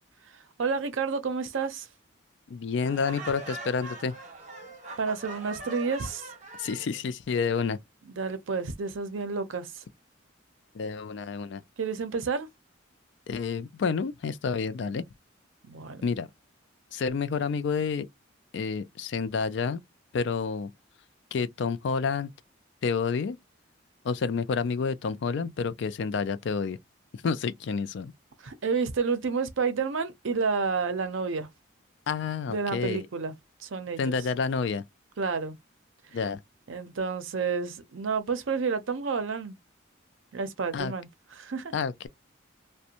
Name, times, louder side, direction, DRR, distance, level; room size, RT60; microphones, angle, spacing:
voice 1, 0.3-1.9 5.0-6.3 8.2-9.8 11.8-12.5 15.6-16.0 28.4-31.5 32.5-33.3 33.6-34.1 35.2-35.6 36.7-39.6 40.3-41.1 41.4-41.7, right 5 dB, 70° right, 0.5 m, -30 dB
voice 2, 2.5-4.1 6.6-7.8 10.7-11.6 13.3-15.0 16.0-16.3 16.9-18.1 18.5-19.8 20.1-20.7 21.3-22.3 22.8-23.4 24.0-26.8 27.1-28.1 32.1-33.1 34.0-34.8 36.1-36.4 40.7-40.9 41.7-42.1, left 5 dB, 60° left, 0.3 m, -29 dB
Laughter, 2.8-6.9, right 2 dB, 35° right, 0.8 m, -42 dB
2.5 x 2.1 x 2.8 m
head